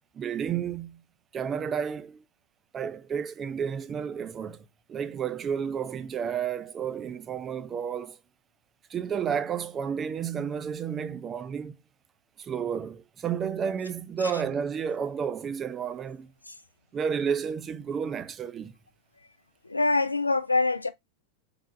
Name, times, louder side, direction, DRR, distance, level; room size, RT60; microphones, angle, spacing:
voice 1, 0.1-1.0 1.3-2.2 2.7-8.2 8.9-11.8 12.4-16.3 16.9-18.7, right 7 dB, 25° right, 0.3 m, -31 dB
voice 2, 19.6-20.9, left 3 dB, 80° left, 0.3 m, -25 dB
3.4 x 3.2 x 2.4 m
figure-of-eight pair, 90°, 0 cm